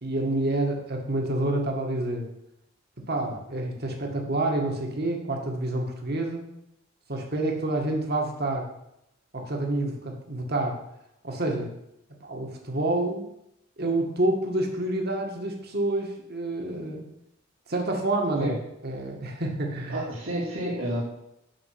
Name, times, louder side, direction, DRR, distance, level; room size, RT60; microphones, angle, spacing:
voice 1, 0.0-2.3 3.0-6.4 7.1-8.6 9.3-10.8 11.2-11.7 12.2-13.3 13.8-17.1 17.7-18.5 18.8-20.0, right 2 dB, 55° right, 2 dB, 2.0 m, -28 dB
voice 2, 19.9-21.0, right 1 dB, 85° right, -10 dB, 3.6 m, -30 dB
7.7 x 6.2 x 7.9 m, 0.82 s
head